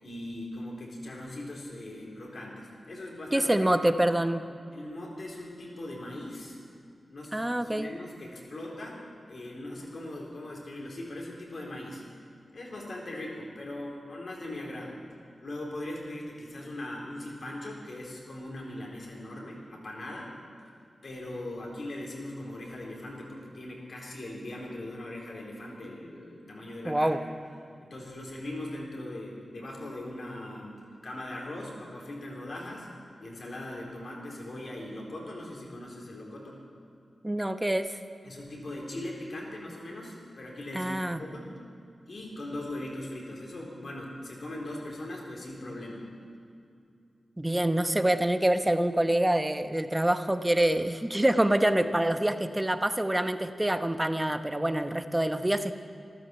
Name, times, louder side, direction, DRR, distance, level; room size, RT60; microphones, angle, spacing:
voice 1, 0.0-3.7 4.7-6.6 7.1-9.0 9.3-12.0 12.5-15.0 15.4-20.3 20.6-20.7 21.0-27.2 27.8-32.9 33.2-36.6 38.2-41.5 42.1-46.0, left 1 dB, 65° left, -2 dB, 3.9 m, -40 dB
voice 2, 3.3-4.4 7.3-7.9 26.8-27.2 37.2-37.9 40.7-41.2 47.4-55.7, right 1 dB, 15° right, 9 dB, 0.9 m, -26 dB
14.0 x 13.0 x 7.0 m, 2.4 s
cardioid pair, 55°, 0 cm